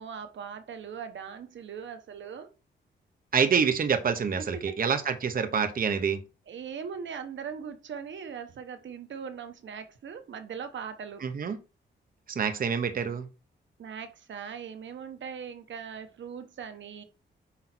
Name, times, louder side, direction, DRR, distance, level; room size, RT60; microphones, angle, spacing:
voice 1, 0.0-2.5 4.7-4.8 6.5-11.3 13.8-17.0, right 7 dB, 70° right, 1.2 m, -40 dB
voice 2, 3.3-6.2 11.2-11.6 12.3-13.3, right 6 dB, 45° right, 1.1 m, -27 dB
8.5 x 5.6 x 4.4 m
wide cardioid pair, 125°, 20 cm